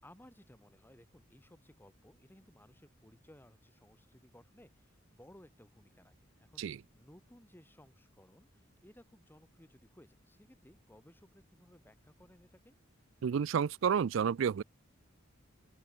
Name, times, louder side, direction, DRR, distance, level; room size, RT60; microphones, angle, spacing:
voice 1, 0.0-12.8, left 1 dB, 10° left, 6.4 m, -60 dB
voice 2, 13.2-14.6, right 7 dB, 70° right, 0.4 m, -30 dB
open air
head